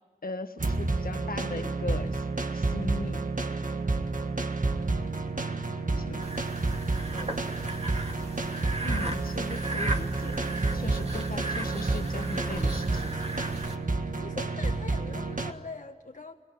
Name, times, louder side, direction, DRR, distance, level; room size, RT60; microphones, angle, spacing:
voice 1, 0.2-2.2 2.5-3.3 6.0-6.3 8.8-13.1, left 3 dB, 85° left, 9 dB, 1.5 m, -39 dB
sound 1, 0.6-15.5, right 3 dB, 65° right, 1.6 m, -30 dB
voice 2, 5.8-6.5 7.1-7.6 8.6-9.0 10.7-11.0 14.1-16.3, left 3 dB, 65° left, 3 dB, 1.6 m, -44 dB
sound 2, 6.2-13.8, right 2 dB, 45° right, 2.5 m, -37 dB
29.0 x 20.5 x 9.8 m, 1.4 s
wide cardioid pair, 55°, 15 cm